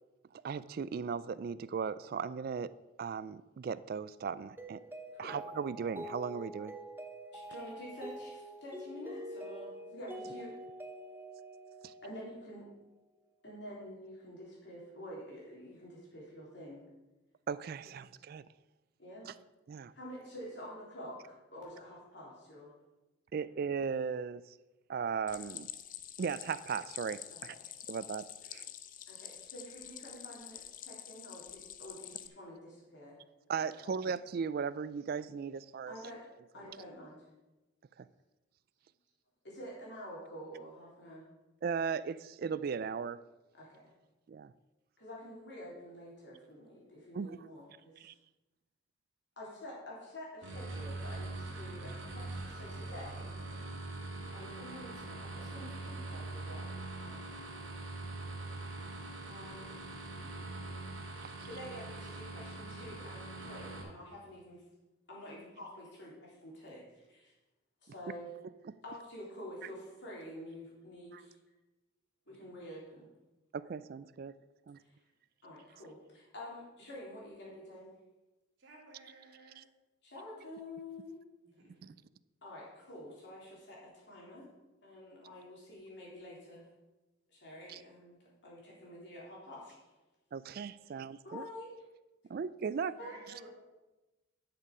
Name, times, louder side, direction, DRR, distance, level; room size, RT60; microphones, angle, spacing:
voice 1, 0.3-2.7 3.0-4.8 5.2-6.8 11.8-11.9 17.5-18.5 19.3-19.4 19.7-19.9 23.3-24.4 24.9-25.7 26.2-27.6 27.9-28.6 33.5-36.0 36.6-36.7 38.0-38.1 41.6-43.2 44.3-44.5 47.1-47.5 48.0-48.1 61.2-61.5 68.7-68.8 71.1-71.2 73.5-74.3 74.7-74.8 79.6-79.7 81.8-81.9 87.7-87.8 90.3-91.5 92.3-93.0, right 6 dB, 50° right, 17 dB, 0.3 m, -37 dB
Mallet percussion, 4.6-12.7, equal, 10° right, 0.7 m, -46 dB
voice 2, 7.3-10.5 12.0-12.7 13.4-16.8 17.9-18.0 19.0-19.4 19.9-22.7 27.5-27.6 29.1-33.2 33.5-33.9 35.9-36.2 36.5-37.3 39.4-41.3 43.5-43.9 45.0-48.1 49.4-53.6 54.3-57.2 59.3-59.7 61.4-64.6 65.1-67.3 67.8-68.3 68.8-71.4 72.3-73.1 74.8-74.9 75.4-77.9 80.0-81.2 82.4-84.5 84.8-86.7 87.3-88.2 88.4-89.9 91.2-91.7 93.0-93.1, left 1 dB, 60° left, -4 dB, 3.5 m, -48 dB
Stream, 25.3-32.3, left 11 dB, 45° left, 0.5 m, -47 dB
sound 1, 50.4-63.8, right 2 dB, 80° right, 2.3 m, -43 dB
voice 3, 78.6-79.6 81.4-82.0 93.0-93.5, right 2 dB, 65° right, -2 dB, 2.7 m, -56 dB
10.5 x 6.8 x 4.9 m, 1.1 s
head